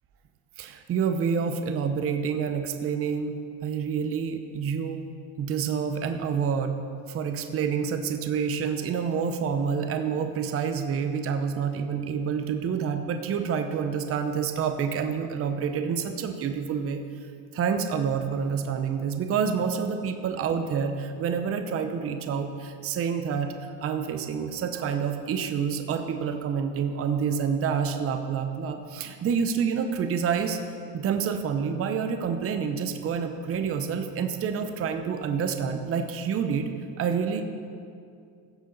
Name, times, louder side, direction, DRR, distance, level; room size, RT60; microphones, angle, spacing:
voice 1, 0.6-5.0 5.4-6.8 7.1-17.0 17.5-23.5 23.8-30.6 30.9-36.7 37.0-37.4, right 6 dB, 30° right, 6 dB, 0.7 m, -28 dB
16.5 x 6.7 x 4.0 m, 2.3 s
cardioid pair, 130°, 46 cm